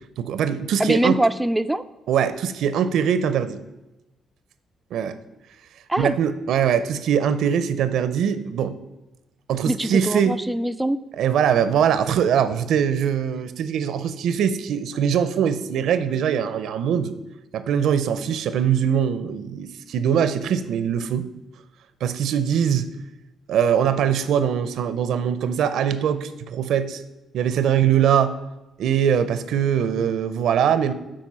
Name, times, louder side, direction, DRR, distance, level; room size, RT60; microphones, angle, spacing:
voice 1, 0.2-1.2 2.1-3.6 4.9-5.2 6.0-8.8 9.5-10.4 11.2-17.1 17.5-21.3 22.0-22.9 23.5-27.0 27.3-28.4 28.8-30.9, right 8 dB, 75° right, 13 dB, 0.5 m, -22 dB
voice 2, 0.8-1.8 5.9-6.1 9.7-11.0, right 1 dB, 10° right, 9 dB, 0.3 m, -23 dB
7.6 x 4.5 x 5.5 m, 0.99 s
cardioid pair, 90°, 0 cm